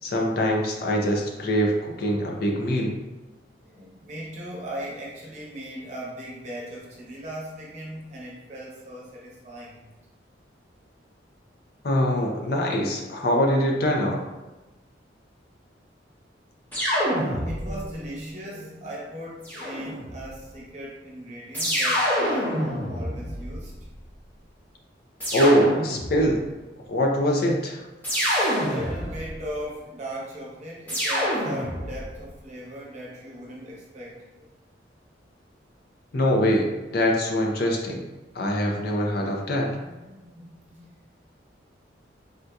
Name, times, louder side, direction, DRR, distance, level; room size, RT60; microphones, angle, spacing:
voice 1, 0.0-2.9 11.8-14.2 25.3-26.4 26.9-27.8 36.1-38.0 38.3-39.7, equal, 55° left, 0 dB, 0.5 m, -23 dB
voice 2, 3.6-9.8 17.2-23.7 28.0-28.3 28.6-34.5 39.8-40.9, equal, 40° right, -5 dB, 0.8 m, -38 dB
sound 1, 16.7-17.9 19.4-20.3 21.5-23.9 25.2-26.3 28.0-29.4 30.9-32.1, equal, 10° left, 0.8 m, -27 dB
3.6 x 2.6 x 2.2 m, 1.1 s
head